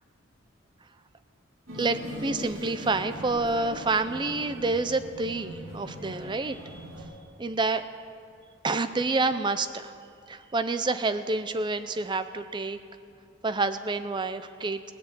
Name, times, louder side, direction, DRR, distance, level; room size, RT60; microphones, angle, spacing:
voice 1, 1.7-6.9 7.4-7.8 8.6-9.9 10.3-12.8 13.4-14.9, right 3 dB, 20° right, 10 dB, 0.5 m, -28 dB
sound 1, 1.7-7.0, equal, 80° right, 3.8 m, -40 dB
17.5 x 7.1 x 8.5 m, 2.5 s
head